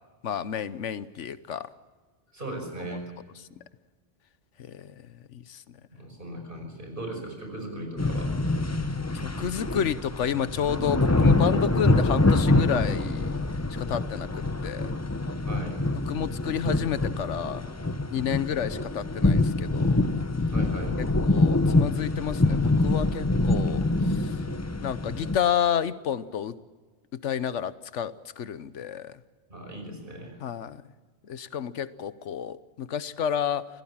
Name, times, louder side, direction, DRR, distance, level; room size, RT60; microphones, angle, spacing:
voice 1, 0.2-1.7 4.6-4.9 5.3-5.6 9.1-13.4 13.8-14.9 16.1-17.7 18.1-20.0 21.0-24.4 24.8-26.6 27.2-29.2 30.4-30.8 31.2-33.7, left 8 dB, 80° left, 15 dB, 1.2 m, -30 dB
voice 2, 2.3-3.1 5.9-8.3 15.5-15.8 20.5-21.0 29.5-30.4, right 1 dB, 45° right, 4 dB, 5.8 m, -38 dB
sound 1, 8.0-25.4, left 2 dB, 15° left, 0.7 m, -25 dB
26.5 x 17.0 x 7.2 m, 1.4 s
omnidirectional pair, 1.2 m